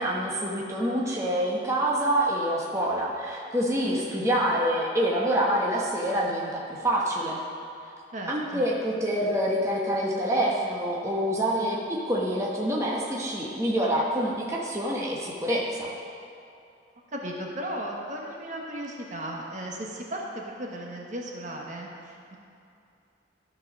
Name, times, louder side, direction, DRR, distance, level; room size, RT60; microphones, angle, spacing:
voice 1, 0.0-7.4 8.3-15.9, right 1 dB, 15° right, -4 dB, 1.1 m, -26 dB
voice 2, 8.1-8.7 17.1-22.4, right 1 dB, 45° right, -1 dB, 1.3 m, -36 dB
13.5 x 4.7 x 6.1 m, 2.5 s
head